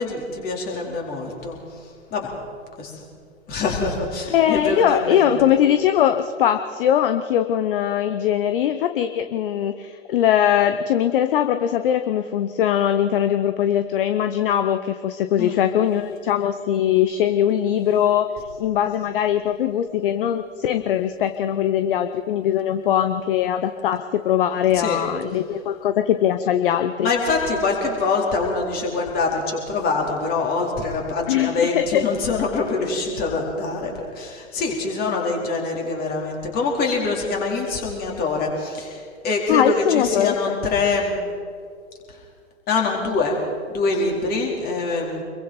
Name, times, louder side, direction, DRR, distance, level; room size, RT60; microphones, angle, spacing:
voice 1, 0.0-1.6 2.1-2.3 2.8-3.0 3.5-5.3 15.4-15.7 24.7-25.0 27.0-41.2 42.1-42.2 42.7-43.4 43.7-45.2, left 3 dB, 25° left, -1 dB, 4.3 m, -24 dB
voice 2, 4.3-18.3 18.6-27.1 31.3-32.0 39.5-40.6, left 10 dB, 40° left, 9 dB, 0.9 m, -21 dB
26.0 x 22.5 x 4.5 m, 2.2 s
figure-of-eight pair, 125°, 40 cm